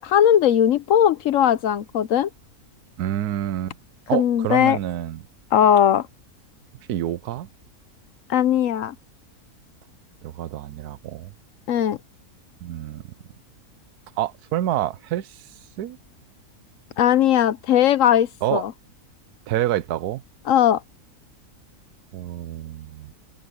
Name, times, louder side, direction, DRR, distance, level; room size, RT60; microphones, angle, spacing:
voice 1, 0.0-2.3 4.1-4.8 5.5-6.1 8.3-8.9 11.7-12.0 17.0-18.7 20.5-20.8, left 10 dB, 65° left, 0.9 m, -18 dB
voice 2, 3.0-3.8 4.1-5.2 6.9-7.5 10.2-11.3 12.6-13.1 14.2-15.5 15.8-16.0 18.4-18.6 19.5-20.2 22.1-23.1, right 12 dB, 85° right, 1.2 m, -27 dB
omnidirectional pair, 1.6 m